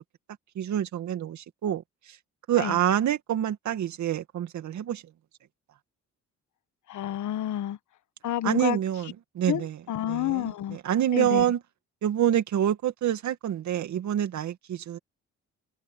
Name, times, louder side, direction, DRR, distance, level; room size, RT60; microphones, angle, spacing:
voice 1, 0.6-1.8 2.1-2.2 2.5-5.0 8.4-9.8 10.1-11.6 12.0-15.0, right 10 dB, 70° right, 2.2 m, -27 dB
voice 2, 6.9-7.8 8.2-8.8 9.5-10.8 11.1-11.4, left 12 dB, 75° left, 1.4 m, -29 dB
cardioid pair, 90°, 30 cm